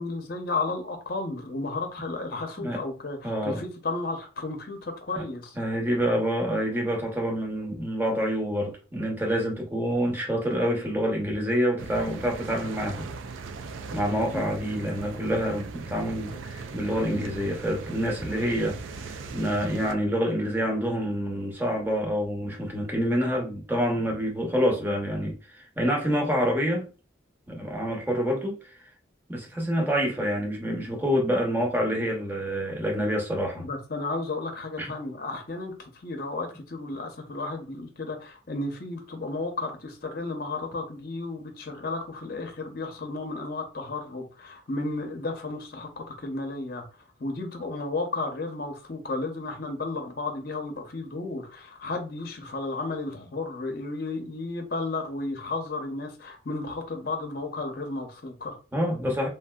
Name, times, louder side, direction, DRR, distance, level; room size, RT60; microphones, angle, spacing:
voice 1, 0.0-5.6 14.3-14.5 17.0-17.3 33.6-46.9 47.2-58.6, left 3 dB, 50° left, 0.7 m, -33 dB
voice 2, 3.2-3.6 5.6-13.1 13.9-26.9 27.5-28.8 29.3-33.6 34.8-34.9 58.7-59.3, equal, 10° right, 0.8 m, -27 dB
sound 1, 11.8-20.0, right 4 dB, 90° right, 0.4 m, -39 dB
3.2 x 2.6 x 2.3 m
head